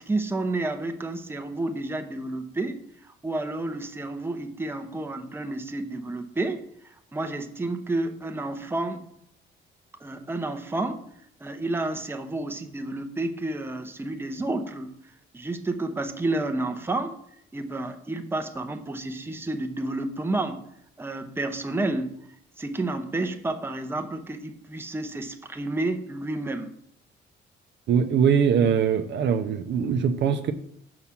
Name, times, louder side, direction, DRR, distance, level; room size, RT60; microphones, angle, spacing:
voice 1, 0.0-2.8 3.0-6.6 7.1-9.0 10.0-11.1 11.4-14.9 15.3-17.1 17.5-20.6 21.0-22.2 22.6-26.7, right 2 dB, 10° right, 6 dB, 0.7 m, -30 dB
voice 2, 27.9-30.5, right 7 dB, 60° right, 8 dB, 0.6 m, -22 dB
5.6 x 4.8 x 5.8 m, 0.71 s
cardioid pair, 90°, 20 cm